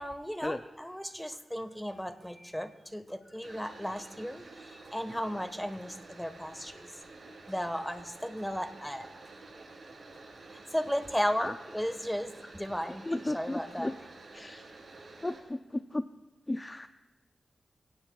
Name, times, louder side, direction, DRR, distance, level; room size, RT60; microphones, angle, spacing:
voice 1, 0.0-6.9 7.5-9.1 10.5-13.1 13.3-13.9, equal, 5° left, 8 dB, 1.3 m, -35 dB
sound 1, 3.4-15.4, right 3 dB, 70° right, 6.3 m, -50 dB
voice 2, 13.0-13.9 14.3-14.7 15.2-16.0 16.5-16.9, left 1 dB, 25° left, 9 dB, 0.5 m, -35 dB
28.0 x 17.5 x 2.4 m, 1.1 s
wide cardioid pair, 80°, 0 cm